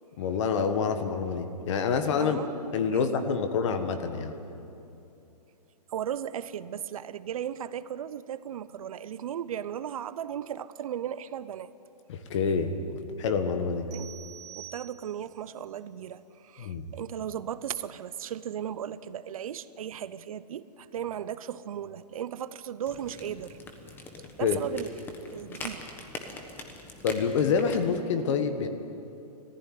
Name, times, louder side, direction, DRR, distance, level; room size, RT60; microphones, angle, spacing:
voice 1, 0.2-2.4 2.7-4.3 12.1-13.9 16.6-16.9 24.4-24.6 27.0-28.7, left 6 dB, 45° left, 8 dB, 1.7 m, -27 dB
voice 2, 2.2-3.3 5.9-11.7 13.9-14.1 14.6-23.5 24.4-24.9 25.3-25.8, right 9 dB, 60° right, 15 dB, 0.7 m, -36 dB
sound 1, 13.9-15.4, right 10 dB, 40° right, 4.3 m, -46 dB
sound 2, 22.8-28.0, left 2 dB, 10° left, 1.2 m, -43 dB
19.0 x 15.0 x 9.5 m, 2.8 s
hypercardioid pair, 160°, 21 cm